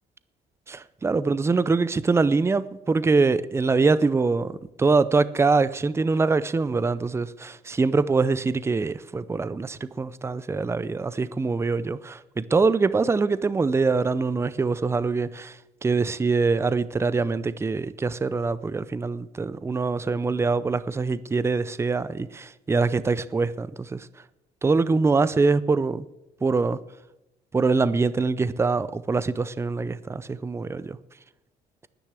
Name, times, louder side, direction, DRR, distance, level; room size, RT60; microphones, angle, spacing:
voice 1, 0.7-24.1 24.6-26.1 26.4-26.8 27.5-31.0, right 4 dB, 15° right, 0.5 m, -24 dB
9.9 x 9.9 x 8.2 m
cardioid pair, 110°, 17 cm